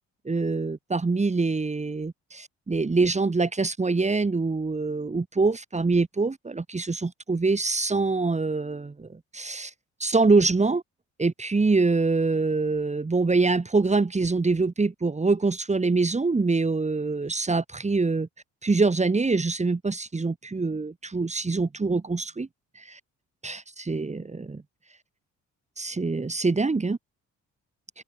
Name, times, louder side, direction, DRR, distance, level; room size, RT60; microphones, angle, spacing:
voice 1, 0.2-9.7 10.0-10.8 11.2-18.3 18.6-22.5 22.7-23.0 23.4-24.6 25.8-27.0, right 3 dB, 25° right, 3.1 m, -24 dB
cardioid pair, 90°, 30 cm